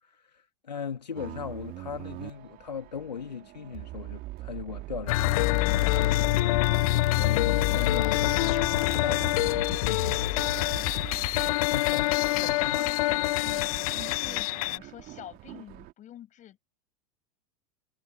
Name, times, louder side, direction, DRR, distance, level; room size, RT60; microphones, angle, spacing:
voice 1, 0.0-6.8 7.2-13.0, left 7 dB, 85° left, 2.6 m, -39 dB
sound 1, 1.1-15.9, right 18 dB, 45° right, 2.8 m, -41 dB
sound 2, 5.1-14.8, left 20 dB, 60° left, 0.5 m, -25 dB
voice 2, 14.2-16.6, left 12 dB, 35° left, 6.3 m, -47 dB
figure-of-eight pair, 85°, 21 cm